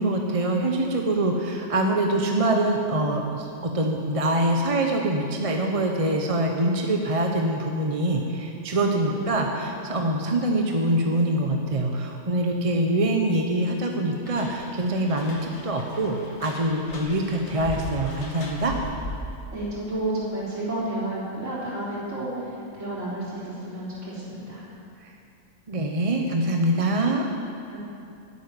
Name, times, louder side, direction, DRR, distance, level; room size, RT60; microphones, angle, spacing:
voice 1, 0.0-18.7 25.0-25.1 25.7-27.3, right 1 dB, 25° right, 2 dB, 0.9 m, -24 dB
voice 2, 9.0-9.6 19.5-24.7 27.7-27.8, right 1 dB, 55° right, -7 dB, 4.3 m, -31 dB
sound 1, 14.3-19.5, left 1 dB, 50° left, 1.7 m, -38 dB
12.0 x 8.3 x 9.8 m, 2.6 s
omnidirectional pair, 1.5 m